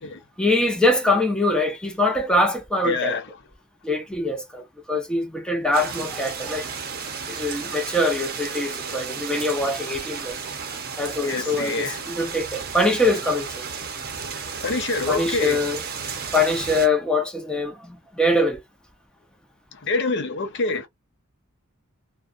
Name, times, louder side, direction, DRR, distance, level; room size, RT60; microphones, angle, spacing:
voice 1, 0.4-3.2 3.8-6.7 7.3-10.3 11.0-13.7 15.1-15.8 16.3-18.6, left 2 dB, 5° left, 0.6 m, -23 dB
voice 2, 2.8-3.3 11.2-12.1 14.6-15.7 19.7-20.9, left 3 dB, 55° left, 0.7 m, -26 dB
sound 1, 5.7-16.9, right 6 dB, 45° right, 0.7 m, -33 dB
2.6 x 2.2 x 2.4 m
head